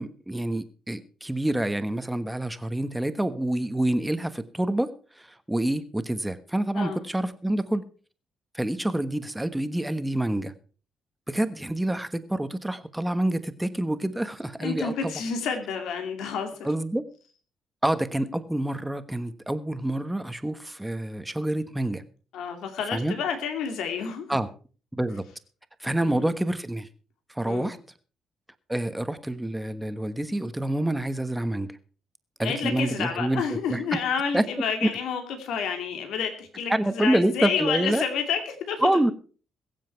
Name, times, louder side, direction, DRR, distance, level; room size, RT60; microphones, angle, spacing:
voice 1, 0.0-7.8 8.5-10.5 11.3-15.1 16.6-17.0 17.8-22.0 22.9-23.1 24.3-24.5 25.0-25.2 25.8-26.9 27.3-27.8 28.7-31.7 32.4-33.8 34.3-34.4 34.8-34.9 36.7-38.0 38.8-39.1, right 1 dB, 10° right, 11 dB, 1.3 m, -27 dB
voice 2, 14.6-16.7 22.3-24.4 26.0-26.3 27.4-27.7 32.4-38.9, left 6 dB, 80° left, 5 dB, 2.5 m, -30 dB
22.5 x 7.5 x 4.6 m, 0.38 s
cardioid pair, 90°, 0 cm